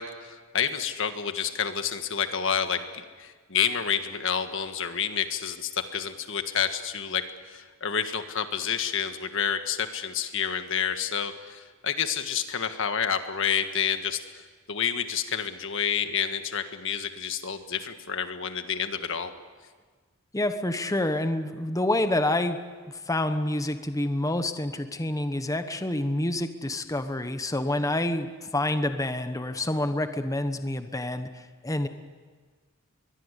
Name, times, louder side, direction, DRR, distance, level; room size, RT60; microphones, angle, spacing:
voice 1, 0.0-14.2 14.7-19.3, left 7 dB, 60° left, 8 dB, 1.6 m, -29 dB
voice 2, 20.3-22.6 22.9-31.9, left 1 dB, 15° left, 9 dB, 1.1 m, -28 dB
23.0 x 21.5 x 8.3 m, 1.5 s
head